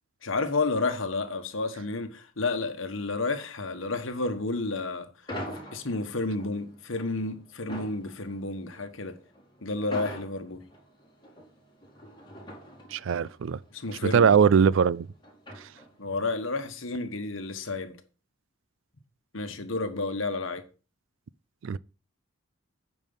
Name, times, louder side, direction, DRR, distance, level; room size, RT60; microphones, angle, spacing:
voice 1, 0.2-5.1 5.7-9.2 9.6-10.7 13.7-14.3 16.0-18.0 19.3-20.6, left 3 dB, 70° left, 1.4 m, -31 dB
sound 1, 5.3-16.2, equal, 20° left, 3.5 m, -44 dB
voice 2, 12.9-13.6 14.1-15.1 15.6-15.7 21.6-21.8, right 6 dB, 70° right, 0.4 m, -21 dB
9.3 x 5.4 x 5.4 m
head